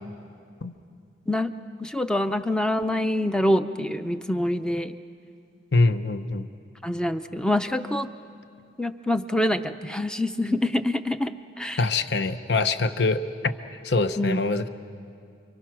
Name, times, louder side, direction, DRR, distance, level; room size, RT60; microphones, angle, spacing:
voice 1, 1.8-4.9 6.8-8.1 8.8-11.8 14.2-14.4, left 1 dB, 5° left, 9 dB, 0.5 m, -25 dB
voice 2, 5.7-6.5 11.8-13.5 13.8-14.7, left 3 dB, 65° left, 10 dB, 0.9 m, -24 dB
29.5 x 24.0 x 6.1 m, 2.4 s
head